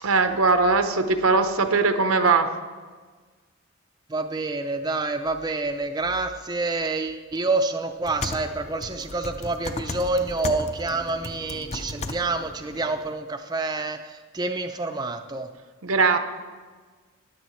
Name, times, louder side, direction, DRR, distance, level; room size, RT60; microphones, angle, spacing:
voice 1, 0.0-2.5 15.8-16.2, right 4 dB, 90° right, 8 dB, 0.9 m, -20 dB
voice 2, 4.1-15.5, right 3 dB, 20° right, 6 dB, 0.4 m, -28 dB
sound 1, 8.0-13.1, left 2 dB, 30° left, 0.5 m, -35 dB
14.0 x 10.5 x 3.1 m, 1.4 s
head